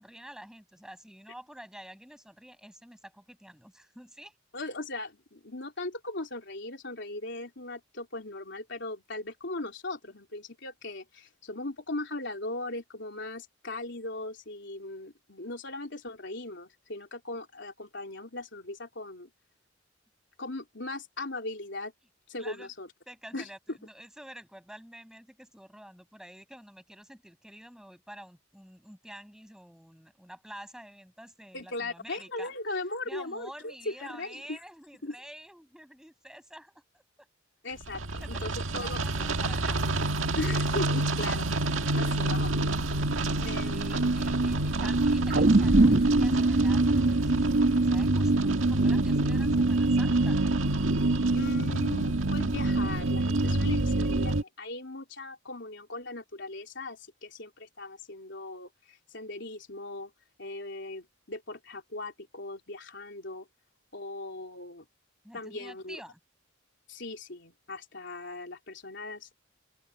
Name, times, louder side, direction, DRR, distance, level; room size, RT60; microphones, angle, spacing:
voice 1, 0.0-4.4 22.4-22.7 23.1-32.5 33.1-37.3 38.0-39.9 43.5-50.5 65.2-66.2, equal, 5° right, 7.2 m, -49 dB
voice 2, 4.5-19.3 20.4-21.9 22.3-22.9 23.3-23.8 31.5-34.6 35.0-35.2 37.6-39.0 40.3-41.7 41.9-42.8 43.4-44.0 51.3-60.1 60.4-63.5 63.9-64.9 65.3-66.0 66.9-69.4, left 2 dB, 60° left, 3.7 m, -38 dB
sound 1, 37.8-54.4, right 2 dB, 75° right, 1.7 m, -26 dB
sound 2, 45.3-49.8 50.2-50.3, right 2 dB, 50° right, 1.4 m, -26 dB
open air
head